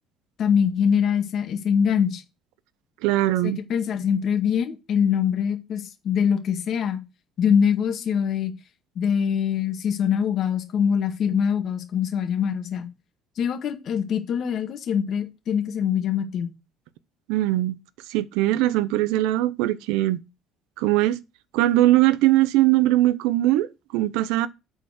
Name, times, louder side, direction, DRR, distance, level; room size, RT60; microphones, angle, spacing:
voice 1, 0.4-2.2 3.4-7.0 7.4-8.5 9.0-12.9 13.4-16.5, left 7 dB, 45° left, 1.8 m, -23 dB
voice 2, 3.0-3.6 17.3-17.7 18.1-20.2 20.8-21.2 21.5-24.5, right 16 dB, 85° right, 0.7 m, -21 dB
8.1 x 4.4 x 6.5 m
cardioid pair, 140°, 0 cm